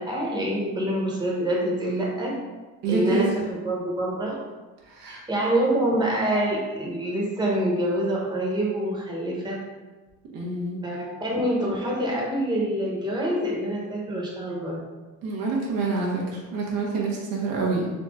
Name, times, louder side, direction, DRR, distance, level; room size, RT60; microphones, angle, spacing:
voice 1, 0.0-2.3 2.9-4.4 5.1-9.6 10.8-14.8, right 1 dB, 15° right, -4 dB, 1.2 m, -26 dB
voice 2, 2.8-3.3 4.9-5.2 10.3-10.8 15.2-17.9, right 3 dB, 80° right, -3 dB, 1.2 m, -27 dB
4.1 x 3.0 x 3.7 m, 1.2 s
cardioid pair, 105°, 34 cm